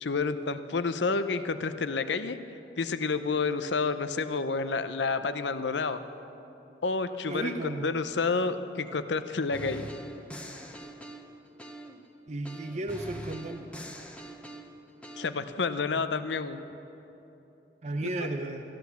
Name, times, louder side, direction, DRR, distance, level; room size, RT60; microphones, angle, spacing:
voice 1, 0.0-2.4 2.8-6.0 6.8-9.9 15.2-16.6, left 4 dB, 85° left, 11 dB, 0.7 m, -29 dB
voice 2, 7.3-7.9 12.3-13.6 17.8-18.6, right 2 dB, 40° right, 4 dB, 0.7 m, -34 dB
sound 1, 9.5-12.1 12.5-15.3, equal, 5° left, 0.9 m, -43 dB
15.0 x 11.5 x 7.0 m, 3.0 s
head